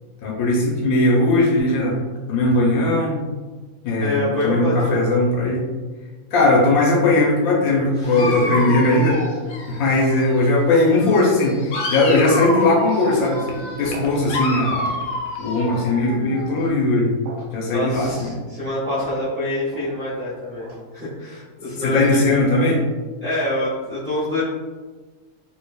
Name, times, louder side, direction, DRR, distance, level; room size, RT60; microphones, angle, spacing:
voice 1, 0.2-2.0 2.3-3.1 3.8-5.7 6.3-9.2 9.7-14.7 15.4-17.1 17.5-18.3 21.6-22.8, left 2 dB, 80° left, -3 dB, 1.1 m, -19 dB
voice 2, 4.0-5.0 7.9-8.8 17.7-22.2 23.2-24.4, left 1 dB, 10° right, -12 dB, 1.1 m, -26 dB
Dog, 8.0-10.4 10.7-16.7, left 2 dB, 60° left, 0.8 m, -28 dB
sound 1, 11.8-11.9 12.5-12.7 13.3-13.5 13.9-14.2 14.7-14.9 15.7-15.9 16.5-16.7 17.2-17.5 18.1-18.3 18.9-19.1 19.7-19.9 20.6-20.8, right 2 dB, 65° right, 1.0 m, -37 dB
4.5 x 2.8 x 2.2 m, 1.3 s
omnidirectional pair, 1.5 m